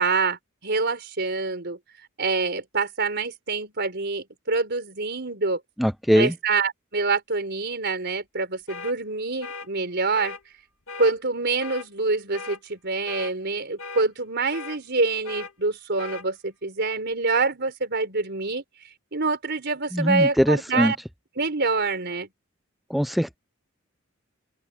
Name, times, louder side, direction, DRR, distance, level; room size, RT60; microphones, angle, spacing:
voice 1, 0.0-1.8 2.2-5.6 6.2-10.4 11.0-18.6 19.1-21.0 21.4-22.3, right 3 dB, 55° right, 4.4 m, -26 dB
voice 2, 5.8-6.3 19.9-20.9 22.9-23.4, equal, ahead, 0.4 m, -21 dB
sound 1, 8.7-8.9 9.4-9.7 10.1-10.4 10.9-11.1 11.6-11.9 12.3-12.6 13.1-13.3 13.8-14.1 14.5-14.8 15.2-15.5 16.0-16.2, left 4 dB, 85° left, 2.2 m, -37 dB
open air
head